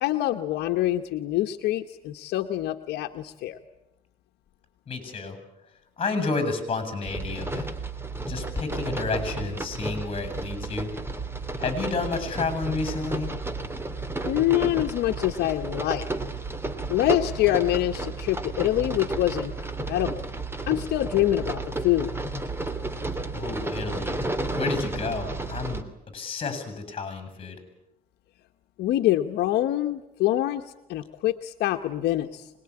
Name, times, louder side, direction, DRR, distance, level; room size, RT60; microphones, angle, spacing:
voice 1, 0.0-3.6 14.2-16.0 16.9-20.2 20.7-22.1 28.8-30.6 30.9-32.5, left 14 dB, 80° left, 5 dB, 1.3 m, -25 dB
voice 2, 4.9-5.4 6.0-7.7 8.3-10.9 11.6-13.3 23.3-24.2 24.5-25.8 26.1-27.6, left 4 dB, 35° left, 11 dB, 7.7 m, -30 dB
sound 1, 7.1-25.8, right 2 dB, 15° right, 2.7 m, -32 dB
25.5 x 21.0 x 9.9 m, 0.86 s
cardioid pair, 110°, 17 cm